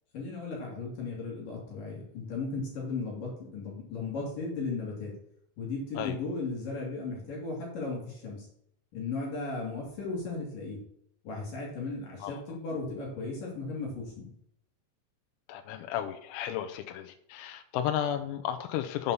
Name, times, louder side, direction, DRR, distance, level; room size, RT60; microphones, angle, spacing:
voice 1, 0.1-5.1 5.6-8.5 8.9-10.8 11.2-14.3, left 3 dB, 50° left, -2 dB, 3.7 m, -36 dB
voice 2, 15.5-19.1, left 10 dB, 90° left, 6 dB, 3.5 m, -33 dB
8.2 x 5.5 x 7.1 m, 0.72 s
omnidirectional pair, 6.0 m